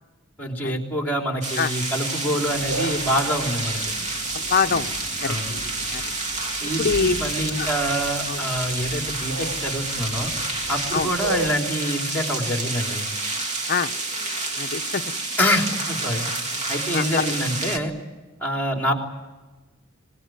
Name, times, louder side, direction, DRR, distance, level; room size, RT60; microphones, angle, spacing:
voice 1, 0.4-3.8 5.3-5.5 6.6-10.3 10.7-13.1 15.4-16.3 16.7-17.9 18.4-18.9, equal, 10° left, 1 dB, 3.6 m, -26 dB
sound 1, 1.4-17.8, right 3 dB, 35° right, 1.7 m, -29 dB
sound 2, 2.4-11.5, right 1 dB, 80° right, 2.7 m, -36 dB
voice 2, 4.3-4.9 5.2-5.3 5.9-6.0 6.8-7.2 7.6-7.7 8.3-8.4 10.9-11.1 13.7-13.9 14.6-15.0 16.9-17.3, left 5 dB, 45° left, 9 dB, 0.7 m, -24 dB
24.0 x 20.5 x 9.4 m, 1.2 s
head